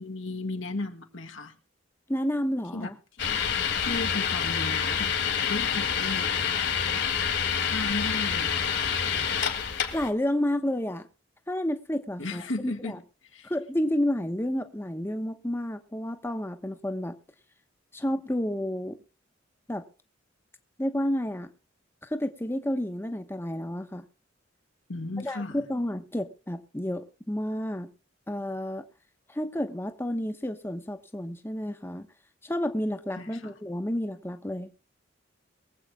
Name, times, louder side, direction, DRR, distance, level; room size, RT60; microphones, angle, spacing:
voice 1, 0.0-1.5 2.7-2.9 3.2-3.4 3.8-6.7 7.6-8.9 12.2-13.0 13.3-13.5 24.9-25.7 33.2-33.5, left 2 dB, 80° left, 1.8 m, -35 dB
voice 2, 2.1-2.9 9.9-11.1 11.5-13.0 13.4-17.2 17.9-19.0 19.7-19.9 20.8-21.5 22.0-24.0 25.2-27.9 28.3-28.8 29.3-32.1 32.4-34.7, left 1 dB, 10° left, 1.0 m, -30 dB
sound 1, 3.2-10.1, left 7 dB, 60° left, 2.5 m, -27 dB
23.0 x 8.0 x 3.6 m
head